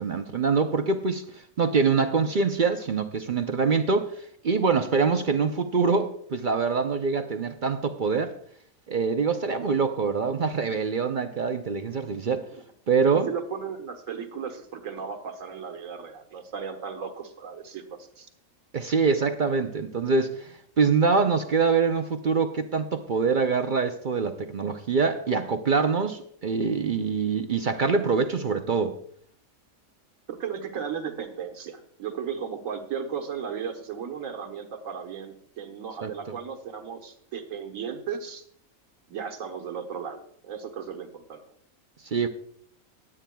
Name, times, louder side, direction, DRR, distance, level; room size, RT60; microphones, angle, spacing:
voice 1, 0.0-8.4 8.9-12.5 12.9-13.3 18.7-29.0 36.0-36.1 42.0-42.3, right 5 dB, 50° right, 0.6 m, -25 dB
voice 2, 13.3-18.3 30.3-38.4 39.1-41.4, right 7 dB, 70° right, 1.7 m, -35 dB
20.5 x 8.8 x 2.3 m
omnidirectional pair, 1.5 m